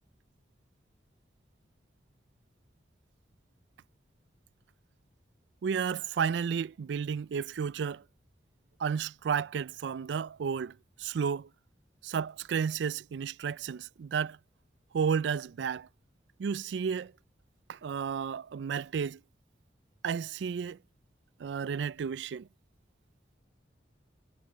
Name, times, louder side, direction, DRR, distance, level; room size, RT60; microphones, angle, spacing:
voice 1, 5.6-8.0 8.8-11.5 12.0-14.4 14.9-15.9 16.4-17.1 17.7-19.2 20.0-20.8 21.4-22.5, right 6 dB, 70° right, 0.4 m, -32 dB
head